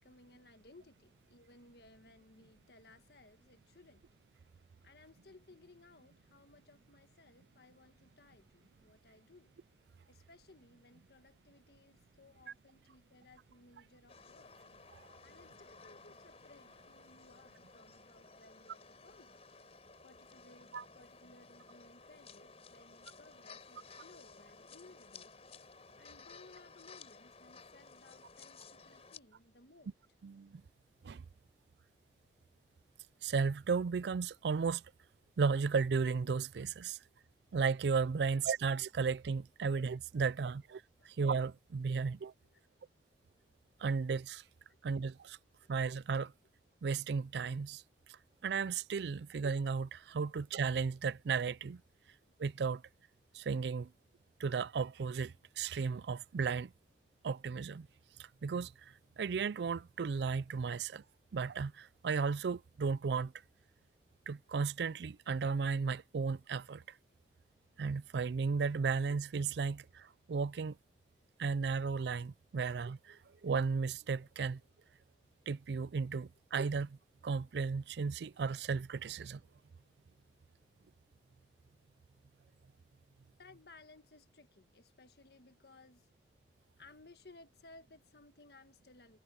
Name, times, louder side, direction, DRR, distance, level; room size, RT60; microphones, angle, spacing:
voice 1, 0.0-4.1 4.8-9.6 10.1-14.5 14.9-19.4 20.0-25.3 26.0-29.9 41.0-41.1 42.4-42.6 44.7-44.8 45.6-45.7 73.2-73.3 83.4-86.1 86.8-89.2, left 2 dB, 65° left, 1.5 m, -61 dB
sound 1, 14.1-29.2, left 4 dB, 35° left, 4.5 m, -56 dB
voice 2, 30.2-30.6 31.0-31.2 33.2-34.8 35.4-37.0 37.5-42.3 43.8-44.4 44.8-45.4 45.7-46.3 46.8-47.8 48.4-51.8 52.4-52.8 53.3-53.9 54.4-56.7 57.2-57.9 58.4-58.7 59.2-61.0 61.3-63.3 64.3-66.8 67.8-70.8 71.4-74.6 75.5-77.0 77.2-79.4, right 5 dB, 75° right, 0.4 m, -34 dB
head